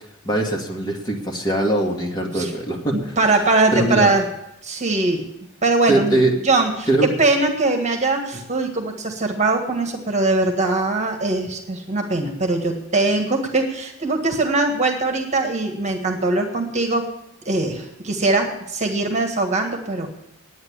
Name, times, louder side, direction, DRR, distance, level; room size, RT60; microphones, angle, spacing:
voice 1, 0.2-3.1 3.7-4.1 5.9-6.4 6.9-7.1, right 1 dB, 20° left, 0 dB, 2.1 m, -21 dB
voice 2, 2.9-4.2 4.6-5.3 5.6-6.2 6.4-17.0 17.4-20.1, right 2 dB, 35° right, 3 dB, 1.7 m, -21 dB
9.6 x 9.5 x 9.7 m, 0.85 s
head